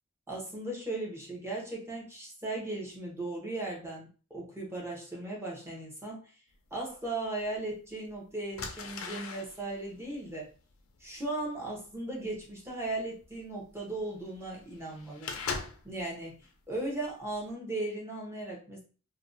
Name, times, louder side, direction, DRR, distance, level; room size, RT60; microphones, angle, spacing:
voice 1, 0.3-6.3 6.7-10.5 11.0-18.8, right 2 dB, 15° right, -2 dB, 0.7 m, -37 dB
sound 1, 7.0-7.1 7.9-8.1 8.5-16.0 16.4-16.8 17.2-17.5, left 4 dB, 75° left, 0.4 m, -41 dB
2.5 x 2.1 x 2.4 m, 0.37 s
head